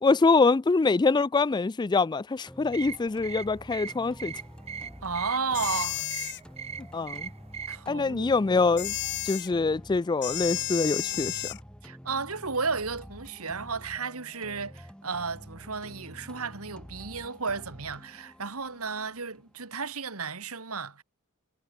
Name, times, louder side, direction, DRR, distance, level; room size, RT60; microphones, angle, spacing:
voice 1, 0.0-4.3 6.9-7.3 7.9-9.0 9.2-11.6, left 4 dB, 20° left, 0.3 m, -24 dB
sound 1, 2.5-20.4, equal, 5° left, 4.4 m, -48 dB
sound 2, 2.7-7.8, right 6 dB, 30° right, 0.7 m, -40 dB
voice 2, 5.0-6.0 7.7-8.3 11.8-21.0, right 4 dB, 80° right, 2.6 m, -33 dB
sound 3, 5.5-6.4 8.8-9.5 10.2-11.6, left 15 dB, 55° left, 0.7 m, -32 dB
head